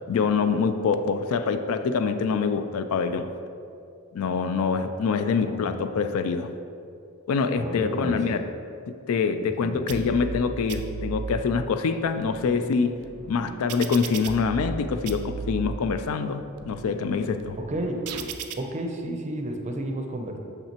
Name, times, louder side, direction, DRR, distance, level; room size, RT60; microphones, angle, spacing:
voice 1, 0.1-3.3 4.1-6.5 7.3-8.5 9.1-13.0 13.3-17.6, left 5 dB, 65° left, 9 dB, 0.3 m, -25 dB
voice 2, 7.6-8.2 9.4-9.8 17.6-18.0 18.6-20.4, right 1 dB, 30° right, 3 dB, 0.5 m, -32 dB
sound 1, 9.9-10.4 10.7-11.4 12.0-14.8 15.1-15.8 16.3-18.5, right 5 dB, 90° right, 0.4 m, -36 dB
6.6 x 5.7 x 2.9 m, 2.5 s
head